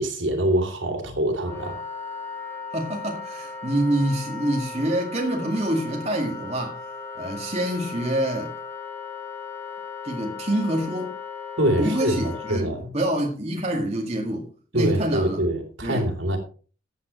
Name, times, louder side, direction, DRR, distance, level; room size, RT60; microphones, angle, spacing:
voice 1, 0.0-1.8 11.6-12.9 14.7-16.4, right 1 dB, 70° right, 3.3 m, -24 dB
Wind instrument woodwind instrument, 1.4-12.6, left 5 dB, 10° left, 3.2 m, -37 dB
voice 2, 2.7-6.8 7.2-8.5 10.0-11.1 11.8-15.4 15.8-16.1, right 1 dB, 30° right, 2.2 m, -26 dB
14.5 x 9.5 x 3.2 m
head